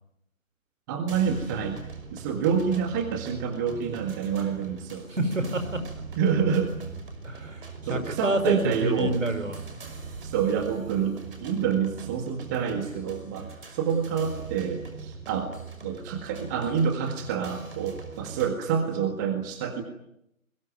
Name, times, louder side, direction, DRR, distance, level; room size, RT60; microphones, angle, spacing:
voice 1, 0.9-1.8 2.1-5.1 6.2-6.7 7.9-9.2 10.2-15.5 15.8-19.8, right 7 dB, 15° right, 6 dB, 1.7 m, -27 dB
sound 1, 1.1-18.5, right 5 dB, 40° right, 5.7 m, -41 dB
voice 2, 5.1-5.8 7.2-9.6, right 1 dB, 65° right, 9 dB, 5.2 m, -27 dB
29.5 x 22.0 x 9.2 m, 0.79 s
figure-of-eight pair, 145°, 41 cm